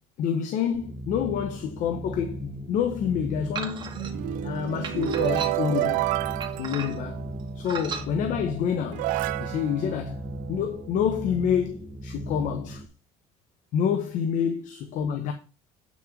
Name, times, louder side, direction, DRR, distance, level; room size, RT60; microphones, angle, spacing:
voice 1, 0.2-3.9 4.4-6.1 6.6-7.2 7.5-9.1 9.4-12.8 13.7-15.3, left 8 dB, 65° left, 1.1 m, -28 dB
sound 1, 0.7-12.9, right 1 dB, 5° right, 1.4 m, -38 dB
sound 2, 3.5-4.1 4.8-5.8 6.4-7.1 7.6-8.1, right 6 dB, 35° right, 2.2 m, -36 dB
sound 3, 3.8-7.6 8.4-8.5 8.9-10.9, right 17 dB, 75° right, 0.4 m, -30 dB
8.7 x 6.3 x 3.9 m
cardioid pair, 100°, 14 cm